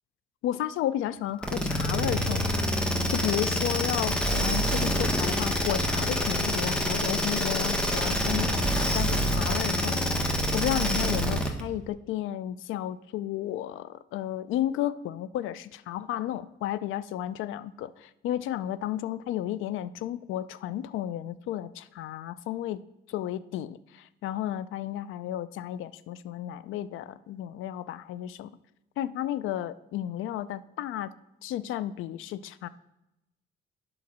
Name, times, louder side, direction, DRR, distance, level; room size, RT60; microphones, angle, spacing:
voice 1, 0.4-2.7 3.1-22.8 23.1-28.5 29.0-31.1 31.4-32.7, left 12 dB, 90° left, 15 dB, 0.5 m, -33 dB
sound 1, 1.4-11.6, equal, 5° left, 1.3 m, -26 dB
8.6 x 5.2 x 6.0 m, 0.91 s
cardioid pair, 90°, 20 cm